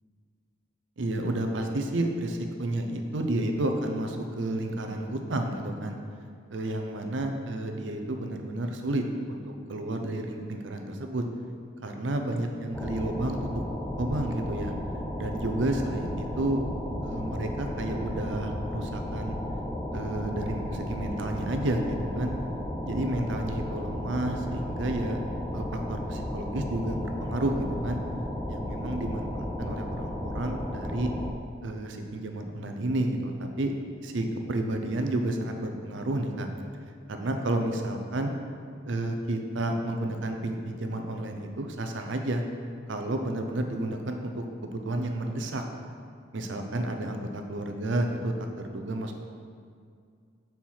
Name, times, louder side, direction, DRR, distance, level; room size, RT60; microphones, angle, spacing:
voice 1, 1.0-6.0 6.5-11.3 11.8-13.5 14.0-14.7 15.2-16.6 17.0-19.4 19.9-22.4 22.8-25.2 25.5-28.0 28.5-31.1 31.6-33.7 34.0-36.5 37.1-38.3 38.9-42.4 42.9-45.6 46.3-48.3 48.6-49.2, right 1 dB, 70° right, 4 dB, 0.6 m, -31 dB
sound 1, 12.7-31.3, left 1 dB, 10° left, 0.3 m, -34 dB
4.6 x 4.3 x 5.5 m, 2.2 s
head